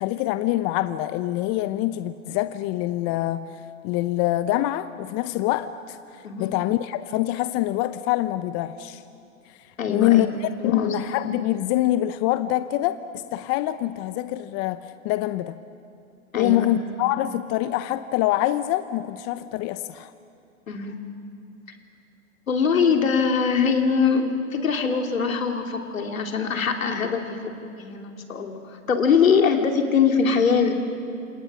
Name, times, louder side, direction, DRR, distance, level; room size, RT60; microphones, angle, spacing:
voice 1, 0.0-3.6 3.8-9.0 9.9-15.6 16.3-20.1, left 14 dB, 35° left, 12 dB, 0.8 m, -25 dB
voice 2, 6.2-6.6 9.8-10.3 10.6-10.9 16.3-16.7 20.7-21.0 22.5-30.7, left 6 dB, 80° left, 4 dB, 2.9 m, -22 dB
28.0 x 27.5 x 6.1 m, 2.5 s
hypercardioid pair, 105°, 40 cm